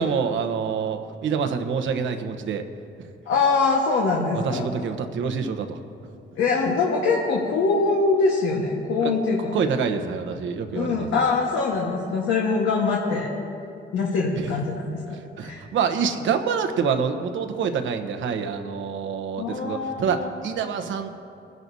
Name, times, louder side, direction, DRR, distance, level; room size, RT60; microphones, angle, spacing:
voice 1, 0.0-2.6 4.3-5.8 9.0-9.1 9.5-11.3 14.3-14.5 15.4-21.1, right 6 dB, 75° right, 7 dB, 1.0 m, -26 dB
voice 2, 3.3-4.6 6.4-9.5 10.7-13.3 13.9-15.6 19.4-20.3, left 4 dB, 75° left, -3 dB, 1.5 m, -23 dB
21.5 x 10.5 x 2.7 m, 2.6 s
cardioid pair, 90°, 20 cm